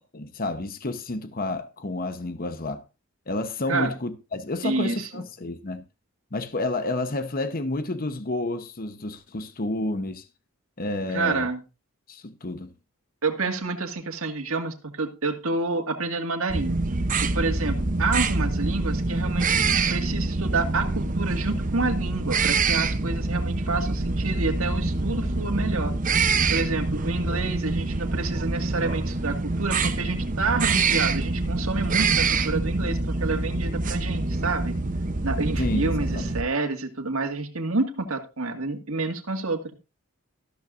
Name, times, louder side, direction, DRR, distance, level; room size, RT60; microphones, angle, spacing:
voice 1, 0.1-2.8 3.3-5.8 6.3-10.2 10.8-11.5 12.1-12.7 35.6-36.3, left 2 dB, 40° left, 0.9 m, -30 dB
voice 2, 4.6-5.2 11.1-11.6 13.2-16.8 17.2-25.9 26.5-34.8 35.2-39.7, right 3 dB, 70° right, 2.0 m, -28 dB
sound 1, 16.5-36.4, right 3 dB, 35° right, 0.8 m, -25 dB
13.5 x 13.0 x 2.6 m
head